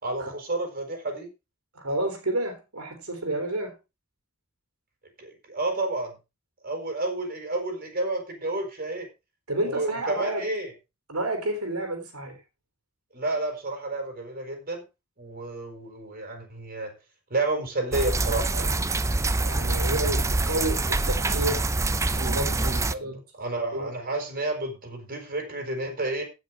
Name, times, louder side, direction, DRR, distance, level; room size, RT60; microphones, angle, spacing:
voice 1, 0.0-1.3 5.2-6.2 6.6-9.1 9.6-10.7 13.1-14.8 15.2-16.9 17.3-18.7 22.6-26.2, right 2 dB, 40° right, 4.9 m, -30 dB
voice 2, 1.7-3.7 9.5-10.5 11.1-12.4 19.4-21.7 22.1-23.2 23.7-23.9, right 1 dB, 80° right, 3.4 m, -30 dB
sound 1, 17.9-22.9, right 2 dB, 15° right, 0.5 m, -25 dB
16.0 x 6.4 x 4.7 m
head